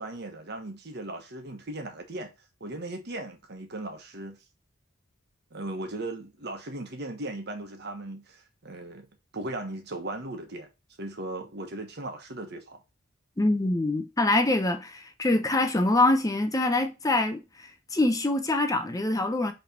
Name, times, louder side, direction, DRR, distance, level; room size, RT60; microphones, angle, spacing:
voice 1, 0.0-2.3 2.6-4.4 5.5-9.1 9.3-10.7 11.0-12.8, right 2 dB, 55° right, 1.3 m, -37 dB
voice 2, 13.4-19.5, left 2 dB, 20° left, 0.7 m, -25 dB
5.4 x 3.4 x 5.1 m
head